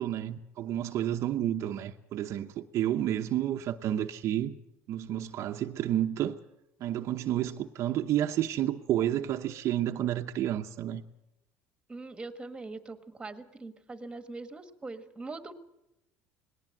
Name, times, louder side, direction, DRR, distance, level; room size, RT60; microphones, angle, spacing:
voice 1, 0.0-4.5 4.9-6.4 6.8-11.0, right 12 dB, 55° right, 0.9 m, -30 dB
voice 2, 11.9-15.5, right 3 dB, 15° right, 1.6 m, -42 dB
19.5 x 18.0 x 7.7 m
cardioid pair, 115°, 6 cm